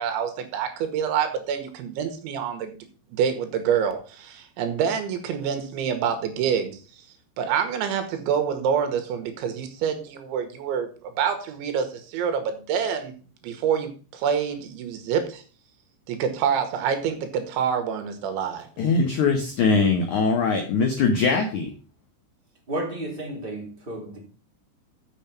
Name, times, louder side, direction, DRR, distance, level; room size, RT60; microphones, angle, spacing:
voice 1, 0.0-2.8 3.2-6.8 7.4-13.1 13.4-15.4 16.1-18.7, right 7 dB, 85° right, 7 dB, 3.6 m, -26 dB
voice 2, 18.8-21.7, left 4 dB, 85° left, 4 dB, 1.7 m, -21 dB
voice 3, 22.7-24.2, right 1 dB, 15° right, -1 dB, 1.9 m, -32 dB
7.2 x 7.0 x 5.8 m, 0.37 s
omnidirectional pair, 5.3 m